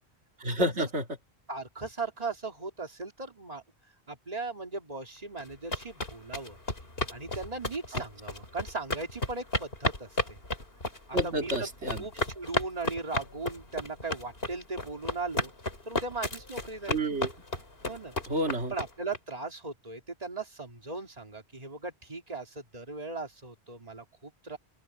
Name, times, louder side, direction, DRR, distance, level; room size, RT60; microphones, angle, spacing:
voice 1, 0.4-1.0 7.9-8.0 11.1-12.0 16.9-17.3 18.3-18.7, right 1 dB, 90° right, 2.6 m, -30 dB
voice 2, 1.5-3.6 4.1-6.6 7.1-10.4 11.1-11.7 12.0-15.5 15.9-17.0 17.9-18.1 18.7-24.6, right 3 dB, 35° right, 2.8 m, -38 dB
sound 1, 5.4-19.2, left 2 dB, 60° left, 4.3 m, -33 dB
open air
omnidirectional pair, 1.1 m